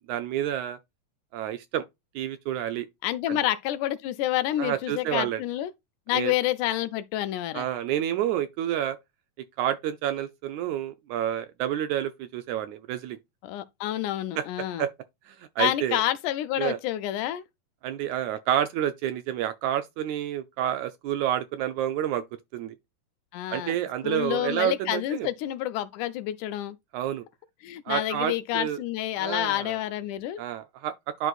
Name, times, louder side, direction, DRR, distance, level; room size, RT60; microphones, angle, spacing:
voice 1, 0.1-0.8 1.3-1.8 2.2-2.9 3.3-3.4 4.6-5.4 6.1-6.3 7.5-9.0 9.4-13.2 14.4-14.5 14.8-14.9 15.3-16.0 16.6-16.8 17.8-22.2 22.5-22.8 23.5-25.3 26.9-27.2 27.9-28.8 29.2-29.8 30.4-31.3, right 11 dB, 80° right, 1.8 m, -29 dB
voice 2, 3.0-5.7 6.1-7.7 13.4-14.9 15.6-17.4 23.3-23.8 24.0-26.8 27.6-30.4, left 13 dB, 80° left, 2.0 m, -28 dB
10.5 x 4.0 x 2.4 m
omnidirectional pair, 3.7 m